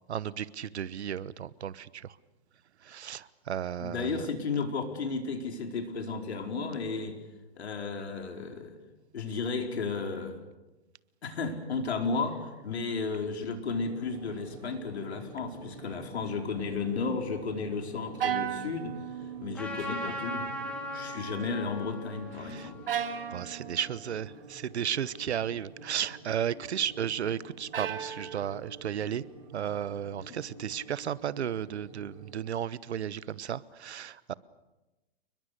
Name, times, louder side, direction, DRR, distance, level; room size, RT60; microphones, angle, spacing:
voice 1, 0.1-2.1 2.9-4.1 22.4-22.7 23.3-29.2 29.5-34.3, right 9 dB, 80° right, 18 dB, 1.1 m, -34 dB
voice 2, 3.8-7.2 7.5-8.8 9.1-10.4 11.2-19.0 19.4-20.5 20.9-22.8, left 4 dB, 75° left, 4 dB, 4.7 m, -33 dB
sound 1, 13.6-32.3, right 3 dB, 30° right, 6.9 m, -49 dB
sound 2, 18.2-19.9 20.2-20.8 22.9-24.1 27.7-28.8, right 9 dB, 60° right, 2.2 m, -36 dB
Trumpet, 19.5-24.2, left 1 dB, 5° left, 2.1 m, -40 dB
29.5 x 21.5 x 6.8 m, 1.1 s
hypercardioid pair, 180°, 33 cm